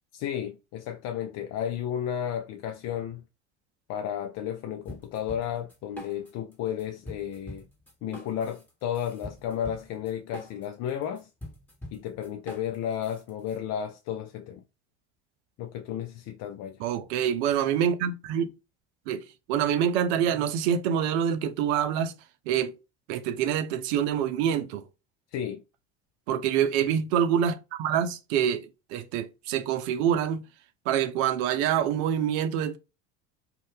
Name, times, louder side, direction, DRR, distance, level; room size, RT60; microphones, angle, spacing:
voice 1, 0.1-3.2 3.9-7.7 8.0-11.3 11.9-14.6 15.6-16.8 25.3-25.6, left 9 dB, 50° left, 0.4 m, -33 dB
sound 1, 4.9-6.5 6.8-13.6, equal, 5° left, 1.5 m, -44 dB
voice 2, 16.8-18.5 19.1-22.1 22.5-22.7 23.1-24.8 26.3-30.4 30.9-32.8, right 9 dB, 75° right, 0.6 m, -26 dB
2.6 x 2.4 x 3.4 m
hypercardioid pair, 80°, 34 cm